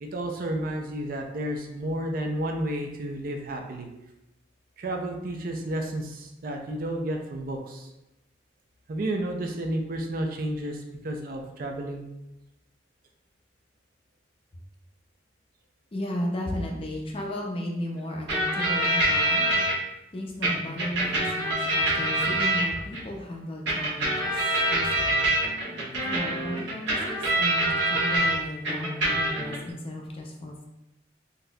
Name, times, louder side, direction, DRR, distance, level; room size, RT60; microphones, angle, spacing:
voice 1, 0.0-3.9 4.8-7.9 8.9-12.0, right 1 dB, 50° right, 3 dB, 0.4 m, -31 dB
voice 2, 15.9-19.5 20.1-25.2 26.1-30.6, left 1 dB, 30° left, 1 dB, 0.4 m, -34 dB
sound 1, 18.3-19.7 20.4-23.0 23.7-28.3 28.6-29.6, right 1 dB, 80° right, 1.3 m, -25 dB
3.9 x 2.6 x 2.2 m, 0.94 s
head